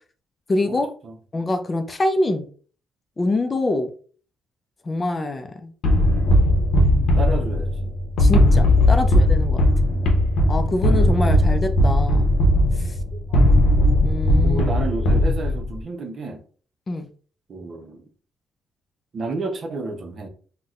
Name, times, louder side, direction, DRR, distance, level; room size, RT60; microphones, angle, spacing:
voice 1, 0.5-0.9 1.3-2.4 3.2-3.9 4.9-5.7 8.2-9.6 10.5-12.3 14.0-14.6 16.9-17.1, left 2 dB, 30° left, 0.4 m, -24 dB
sound 1, 5.8-15.8, left 1 dB, 75° left, 0.7 m, -18 dB
voice 2, 6.9-7.9 9.0-9.1 9.8-10.1 13.3-13.6 14.4-16.4 17.5-18.0 19.1-20.3, right 3 dB, 50° right, 0.7 m, -31 dB
3.9 x 2.2 x 2.4 m
cardioid pair, 90°, 0 cm